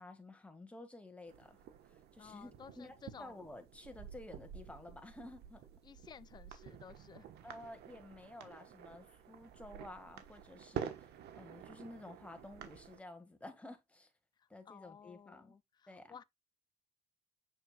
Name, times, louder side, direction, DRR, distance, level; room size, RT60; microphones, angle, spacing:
voice 1, 0.0-2.5 2.8-5.6 7.4-14.1 14.5-15.6 15.9-16.2, left 2 dB, 10° left, 1.8 m, -52 dB
sound 1, 1.3-13.0, right 9 dB, 75° right, 1.2 m, -50 dB
voice 2, 2.2-3.4 5.8-7.3 14.4-16.2, left 7 dB, 25° left, 0.4 m, -55 dB
6.8 x 6.5 x 2.4 m
cardioid pair, 110°, 17 cm